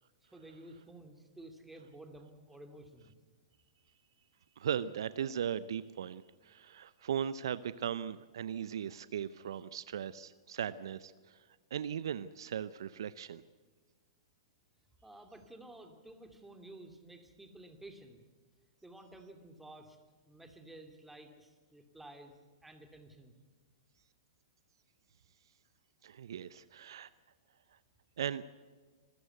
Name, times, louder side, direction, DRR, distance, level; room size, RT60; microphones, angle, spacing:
voice 1, 0.2-3.1 9.5-9.6 15.0-18.2 18.8-20.0 20.2-22.4 22.6-23.3, right 1 dB, 5° right, 6 dB, 2.8 m, -53 dB
voice 2, 4.6-11.4 11.7-13.4 26.0-27.1 28.2-28.4, right 9 dB, 65° right, 16 dB, 0.7 m, -38 dB
26.5 x 14.5 x 8.1 m, 1.4 s
hypercardioid pair, 110°, 3 cm